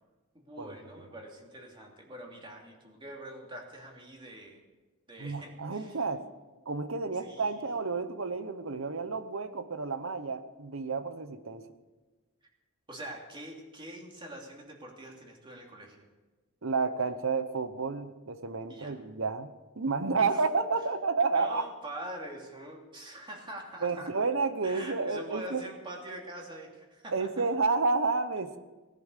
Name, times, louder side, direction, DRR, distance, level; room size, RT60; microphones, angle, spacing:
voice 1, 0.3-4.6 5.1-6.0 7.1-7.6 12.9-16.0 18.7-18.9 20.1-20.4 21.3-24.1 24.6-27.5, right 1 dB, 20° right, 0 dB, 2.7 m, -44 dB
voice 2, 5.2-6.2 6.7-11.7 16.6-21.6 23.8-25.6 27.1-28.6, right 4 dB, 65° right, 11 dB, 0.9 m, -30 dB
18.0 x 10.5 x 6.7 m, 1.2 s
head